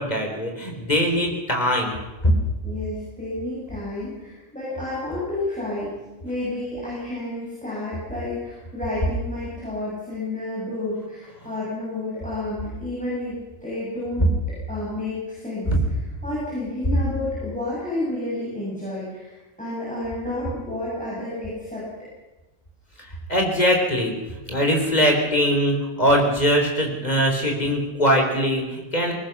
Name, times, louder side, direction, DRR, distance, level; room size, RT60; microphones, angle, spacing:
voice 1, 0.0-1.9 2.2-2.3 15.7-15.8 23.0-29.1, equal, 30° left, 2 dB, 4.2 m, -21 dB
voice 2, 2.6-5.9 6.2-14.3 14.7-15.7 16.2-21.8, left 2 dB, 5° left, -8 dB, 7.5 m, -30 dB
22.5 x 19.5 x 6.1 m, 1.1 s
omnidirectional pair, 1.3 m